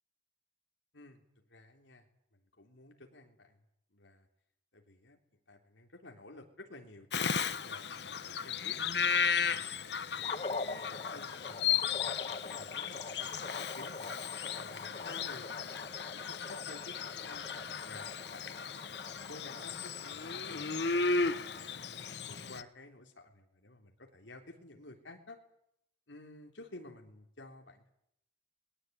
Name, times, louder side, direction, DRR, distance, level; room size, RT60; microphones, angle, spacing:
voice 1, 1.5-2.1 2.3-3.6 3.9-4.3 4.7-5.2 5.5-9.0 9.5-14.2 14.6-17.5 17.8-20.8 21.2-25.4 26.1-27.9, left 2 dB, 90° left, 3 dB, 3.6 m, -53 dB
Bird vocalization bird call bird song, 7.1-22.6, left 6 dB, 65° left, 1.2 m, -35 dB
sound 1, 10.2-22.5, left 3 dB, 35° left, 1.3 m, -45 dB
22.5 x 21.0 x 9.4 m, 0.76 s
head